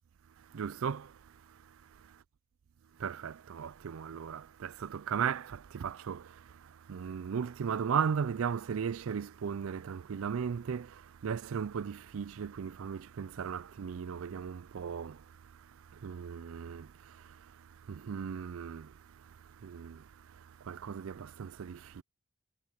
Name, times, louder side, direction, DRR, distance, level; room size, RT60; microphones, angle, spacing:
voice 1, 0.5-1.1 3.0-6.3 6.9-10.9 11.2-15.2 16.0-16.9 17.9-18.9 19.6-20.0 20.7-22.0, right 7 dB, 65° right, 0.4 m, -36 dB
head